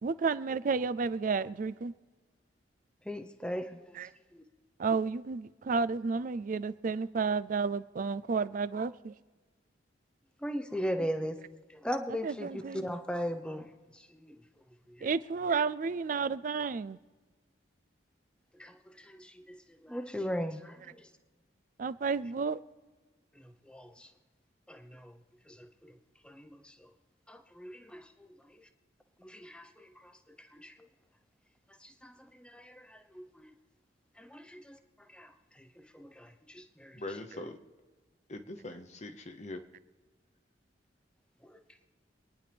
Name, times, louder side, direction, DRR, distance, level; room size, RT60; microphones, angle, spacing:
voice 1, 0.0-1.9 4.0-4.1 4.8-9.1 12.2-12.9 15.0-17.0 21.8-22.6, right 5 dB, 45° right, 0.4 m, -31 dB
voice 2, 3.0-3.9 4.3-4.4 10.4-11.4 11.7-13.7 13.9-14.4 14.9-15.1 18.6-21.1 23.3-24.1 24.7-25.2 25.5-26.0 26.2-26.9 27.3-28.7 29.2-30.7 31.8-33.5 34.2-34.8 35.1-37.5 41.4-41.6, equal, 5° left, 0.8 m, -39 dB
voice 3, 36.9-37.6 38.3-39.6, left 2 dB, 40° left, 0.9 m, -42 dB
25.5 x 10.0 x 3.4 m
head